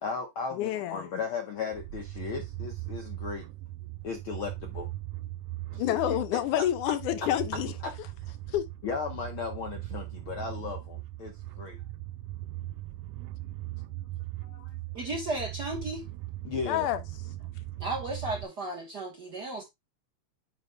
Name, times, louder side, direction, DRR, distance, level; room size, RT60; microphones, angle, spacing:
voice 1, 0.0-3.5 4.0-4.9 5.7-6.4 7.8-7.9 8.8-11.8 14.4-14.7 16.4-16.9, left 5 dB, 70° left, 1.2 m, -36 dB
voice 2, 0.5-1.1 5.8-7.7 8.5-8.6 16.6-17.0, left 12 dB, 90° left, 2.4 m, -28 dB
sound 1, 1.7-18.4, right 16 dB, 85° right, 1.4 m, -39 dB
voice 3, 14.9-16.0 17.8-19.6, right 2 dB, 50° right, 1.2 m, -34 dB
8.1 x 3.2 x 5.3 m
omnidirectional pair, 3.5 m